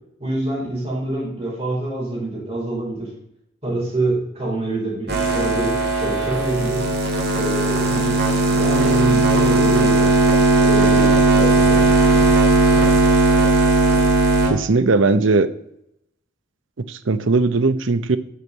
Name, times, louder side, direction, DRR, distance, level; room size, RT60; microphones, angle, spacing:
voice 1, 0.2-3.1 3.6-6.8 7.3-8.2 8.5-10.1 10.6-11.8, right 2 dB, 30° right, -6 dB, 4.7 m, -26 dB
sound 1, 5.1-14.5, right 2 dB, 55° right, 2.2 m, -17 dB
voice 2, 14.5-15.5 16.8-18.2, right 3 dB, 75° right, 12 dB, 0.7 m, -18 dB
8.3 x 6.2 x 7.5 m, 0.78 s
head